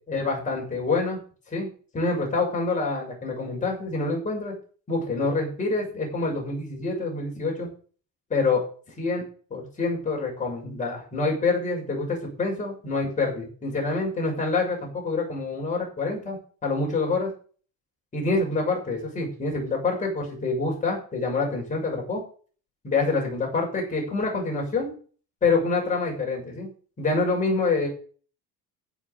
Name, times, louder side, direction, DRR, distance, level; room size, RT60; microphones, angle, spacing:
voice 1, 0.1-1.2 1.5-1.7 1.9-4.5 4.9-7.7 8.3-8.6 9.0-9.2 9.5-17.3 18.1-22.2 22.8-24.9 25.4-26.7 27.0-27.9, left 3 dB, 20° left, -1 dB, 6.6 m, -26 dB
15.0 x 7.0 x 7.0 m, 0.41 s
cardioid pair, 160°, 41 cm